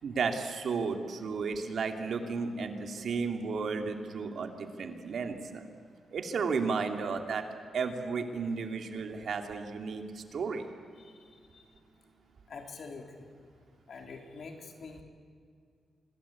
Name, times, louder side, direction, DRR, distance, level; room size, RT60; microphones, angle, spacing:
voice 1, 0.0-5.8 6.1-7.4 7.7-10.7, right 5 dB, 65° right, 5 dB, 2.4 m, -33 dB
voice 2, 11.0-11.6 12.5-13.3 13.9-15.0, left 4 dB, 60° left, 3 dB, 3.5 m, -46 dB
25.5 x 21.0 x 8.4 m, 2.2 s
wide cardioid pair, 120°, 0 cm